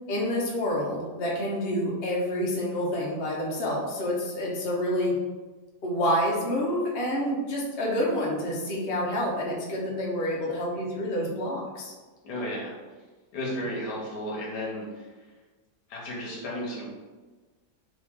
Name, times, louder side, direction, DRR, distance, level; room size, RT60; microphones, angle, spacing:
voice 1, 0.1-5.2 5.8-11.9, equal, 45° left, -3 dB, 1.0 m, -28 dB
voice 2, 12.2-12.7 13.3-15.3 15.9-16.9, equal, 80° left, -4 dB, 1.6 m, -34 dB
3.8 x 3.5 x 3.6 m, 1.3 s
omnidirectional pair, 1.8 m